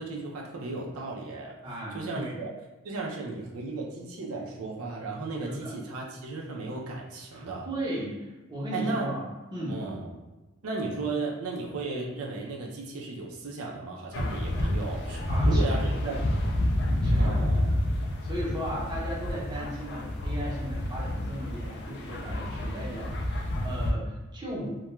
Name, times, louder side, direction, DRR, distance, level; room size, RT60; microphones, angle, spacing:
voice 1, 0.0-1.6 1.9-2.5 2.8-7.7 8.7-9.1 9.7-10.1 10.6-16.2 17.2-17.7, right 3 dB, 90° right, -2 dB, 0.5 m, -35 dB
voice 2, 1.6-2.4 5.5-5.7 7.3-9.2 9.5-9.8 15.3-16.2 17.0-24.7, equal, 20° right, -6 dB, 0.6 m, -36 dB
sound 1, 14.1-23.9, left 1 dB, 55° left, 0.3 m, -28 dB
2.2 x 2.2 x 2.9 m, 1.1 s
head